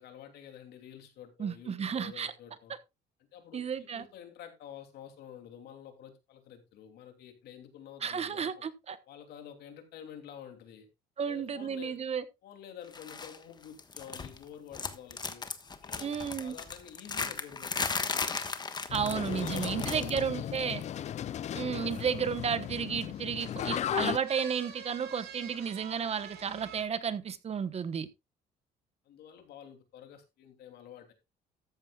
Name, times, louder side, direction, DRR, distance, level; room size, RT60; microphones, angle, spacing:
voice 1, 0.0-2.7 3.3-8.6 9.1-10.9 11.2-12.0 12.4-18.3 19.1-21.1 29.0-31.1, left 9 dB, 70° left, 3.0 m, -49 dB
voice 2, 1.4-2.3 3.5-4.0 8.0-9.0 11.2-12.2 16.0-16.5 18.9-20.8 21.5-28.1, right 7 dB, 40° right, 1.1 m, -33 dB
sound 1, 12.9-13.4 13.6-14.4 14.7-20.3 20.6-20.8 21.9-22.0, left 4 dB, 25° left, 1.3 m, -36 dB
sound 2, 18.9-24.2, left 10 dB, 45° left, 0.4 m, -36 dB
sound 3, 21.6-26.8, right 7 dB, 70° right, 2.6 m, -49 dB
13.5 x 9.7 x 2.4 m
cardioid pair, 110°, 17 cm